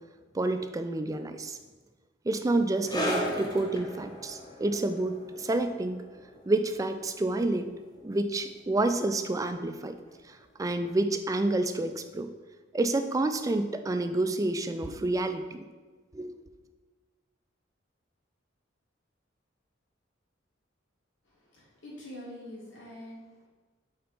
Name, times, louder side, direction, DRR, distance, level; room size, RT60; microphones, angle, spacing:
voice 1, 0.3-1.6 2.3-6.0 6.5-7.7 8.0-10.0 10.6-12.3 12.7-15.7 16.1-16.3, right 2 dB, 20° right, 8 dB, 0.3 m, -29 dB
sound 1, 2.9-9.9 10.1-10.3 11.1-11.2, equal, 20° left, 0.9 m, -37 dB
voice 2, 21.2-23.5, left 1 dB, 75° left, -5 dB, 1.7 m, -45 dB
4.2 x 4.2 x 5.5 m, 1.3 s
head